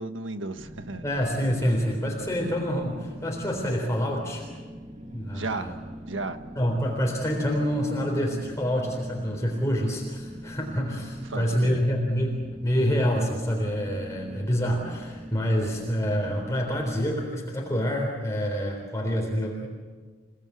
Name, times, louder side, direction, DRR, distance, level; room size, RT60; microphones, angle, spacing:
voice 1, 0.0-1.0 5.3-5.7 6.1-6.4 11.3-11.8, right 3 dB, 80° right, 9 dB, 1.5 m, -34 dB
sound 1, 0.6-17.1, equal, 40° right, 1.9 m, -42 dB
voice 2, 1.0-4.4 5.1-5.8 6.6-19.7, equal, 15° left, -1 dB, 3.7 m, -27 dB
29.0 x 18.5 x 8.4 m, 1.5 s
head